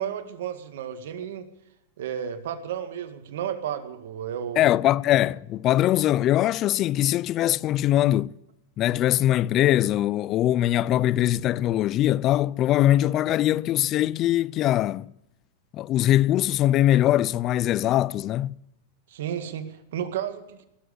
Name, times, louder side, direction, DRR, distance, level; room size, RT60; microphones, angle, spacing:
voice 1, 0.0-1.5 2.0-4.7 19.1-20.7, right 9 dB, 75° right, 2.0 m, -32 dB
voice 2, 4.6-8.3 8.8-15.1 15.7-18.6, left 13 dB, 40° left, 0.5 m, -22 dB
19.5 x 7.7 x 8.2 m
hypercardioid pair, 120°, 0 cm